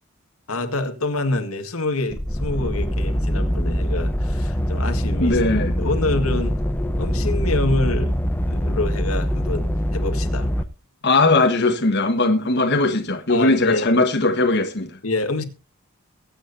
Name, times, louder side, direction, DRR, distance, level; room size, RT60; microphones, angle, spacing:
voice 1, 0.5-6.6 7.0-8.1 8.5-10.5 13.3-14.0 15.0-15.4, left 2 dB, 85° left, 2.0 m, -26 dB
sound 1, 2.1-10.6, equal, 10° left, 0.9 m, -23 dB
voice 2, 5.2-5.7 11.0-14.9, left 2 dB, 55° left, 1.4 m, -19 dB
23.0 x 9.0 x 2.7 m
head